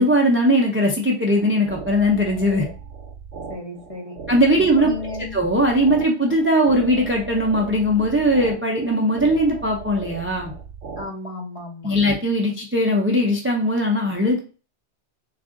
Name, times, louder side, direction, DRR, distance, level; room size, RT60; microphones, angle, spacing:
voice 1, 0.0-2.7 4.3-4.9 5.3-10.5 11.8-14.4, equal, 20° right, 0 dB, 0.4 m, -19 dB
sound 1, 1.3-11.1, right 4 dB, 80° right, 1.0 m, -37 dB
voice 2, 3.5-4.2 4.6-5.3 11.0-11.9, left 2 dB, 35° left, -1 dB, 0.9 m, -34 dB
3.6 x 2.4 x 3.7 m, 0.35 s
omnidirectional pair, 1.2 m